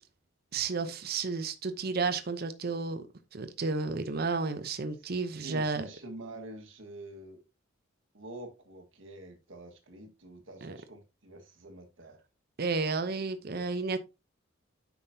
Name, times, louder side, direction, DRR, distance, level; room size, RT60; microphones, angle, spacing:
voice 1, 0.5-3.0 3.3-5.9 10.6-10.8 12.6-14.0, right 4 dB, 50° right, 0.7 m, -32 dB
voice 2, 5.4-7.4 8.1-12.2 13.5-13.7, right 1 dB, 70° right, 1.6 m, -46 dB
9.0 x 5.9 x 2.7 m
head